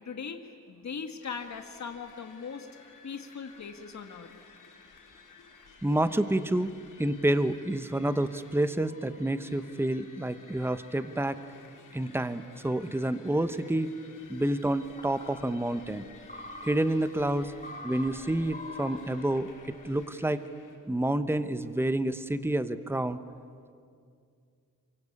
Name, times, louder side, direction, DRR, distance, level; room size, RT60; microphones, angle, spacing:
voice 1, 0.0-2.7 3.0-4.3, left 6 dB, 60° left, 5 dB, 1.8 m, -39 dB
sound 1, 1.2-20.8, left 5 dB, 75° left, 6.8 m, -55 dB
voice 2, 5.8-11.4 11.9-13.9 14.3-16.1 16.6-17.5 17.8-20.4 20.9-23.2, right 1 dB, 5° right, 11 dB, 1.1 m, -29 dB
sound 2, 14.8-20.1, left 1 dB, 25° left, 2.0 m, -46 dB
27.5 x 24.0 x 8.7 m, 2.3 s
cardioid pair, 80°, 32 cm